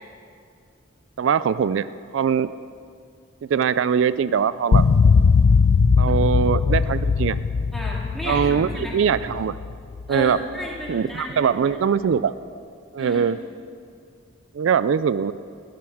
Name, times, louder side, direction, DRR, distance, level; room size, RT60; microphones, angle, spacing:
voice 1, 1.2-1.9 2.1-2.5 3.5-4.8 6.0-7.4 8.3-8.7 8.9-9.6 10.1-10.4 10.9-12.3 12.9-13.4 14.5-15.3, right 7 dB, 75° right, 15 dB, 0.3 m, -21 dB
sound 1, 4.7-10.1, left 5 dB, 85° left, 0.5 m, -19 dB
voice 2, 7.7-8.9 10.1-11.9 13.0-13.3, left 1 dB, ahead, -4 dB, 2.4 m, -33 dB
15.0 x 10.5 x 6.3 m, 2.3 s
head